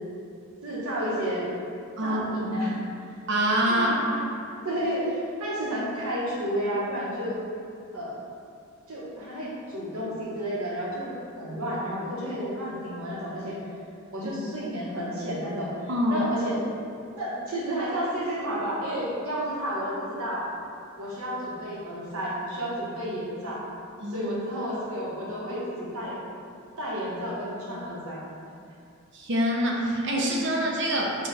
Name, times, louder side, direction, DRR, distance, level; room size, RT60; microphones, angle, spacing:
voice 1, 0.6-1.5 2.0-2.7 3.7-4.2 4.6-7.4 7.9-8.1 8.9-13.6 14.1-15.7 16.1-16.6 17.1-20.5 21.0-23.6 24.1-26.2 26.8-28.2, equal, 80° right, -6 dB, 1.1 m, -31 dB
voice 2, 3.3-4.0 15.9-16.2 24.0-24.3 29.1-31.3, equal, 55° right, -1 dB, 0.6 m, -25 dB
4.6 x 2.3 x 4.0 m, 2.4 s
head